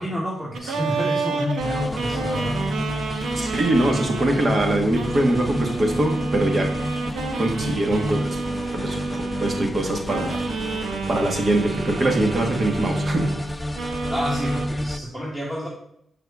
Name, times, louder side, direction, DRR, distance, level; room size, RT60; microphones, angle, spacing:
voice 1, 0.0-2.6 14.1-15.7, equal, 15° right, -5 dB, 1.9 m, -29 dB
sound 1, 0.5-4.5 4.9-9.8 10.1-13.4 13.7-14.7, right 4 dB, 85° right, 1.0 m, -30 dB
sound 2, 1.6-15.0, left 1 dB, 10° left, 0.6 m, -30 dB
voice 2, 3.3-6.7 7.3-8.4 8.8-10.4 11.1-13.3, right 1 dB, 45° right, 3 dB, 1.5 m, -23 dB
7.1 x 5.6 x 3.5 m, 0.74 s
cardioid pair, 85°, 0 cm